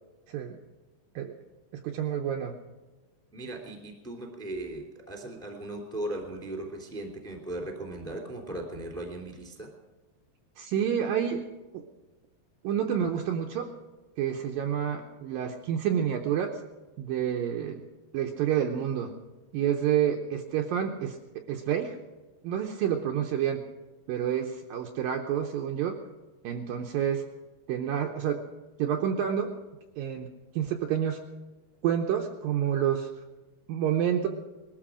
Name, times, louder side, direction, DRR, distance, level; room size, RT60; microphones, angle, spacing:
voice 1, 0.3-0.6 1.2-1.3 1.8-2.5 10.6-11.4 11.7-11.8 12.6-13.7 14.2-16.6 17.0-17.8 18.1-19.1 19.5-21.2 21.5-22.0 22.4-23.6 24.1-26.0 26.4-27.2 27.7-28.4 28.8-29.5 30.0-30.3 30.6-31.2 31.8-33.2 33.7-34.3, right 9 dB, 90° right, 3 dB, 1.9 m, -28 dB
voice 2, 3.3-9.7, right 1 dB, ahead, 1 dB, 1.8 m, -38 dB
20.5 x 13.5 x 5.0 m, 1.2 s
omnidirectional pair, 5.2 m